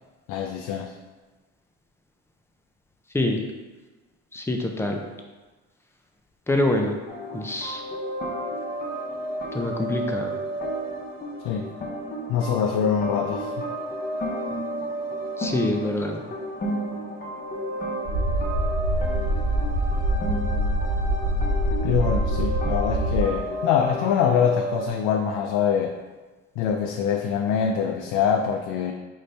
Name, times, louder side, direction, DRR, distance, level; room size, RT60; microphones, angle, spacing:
voice 1, 0.3-0.9 11.4-11.7 12.3-13.7 21.8-26.0 26.6-28.9, left 7 dB, 70° left, 3 dB, 0.5 m, -24 dB
voice 2, 4.3-5.0 6.5-7.0 7.3-7.8 9.5-10.3 15.4-16.2, left 1 dB, 10° left, 2 dB, 0.6 m, -25 dB
sound 1, 7.1-24.9, right 1 dB, 30° left, 0.9 m, -32 dB
sound 2, 18.1-23.2, right 1 dB, 45° right, 1.3 m, -24 dB
5.4 x 2.6 x 3.3 m, 1.3 s
supercardioid pair, 85°, 32 cm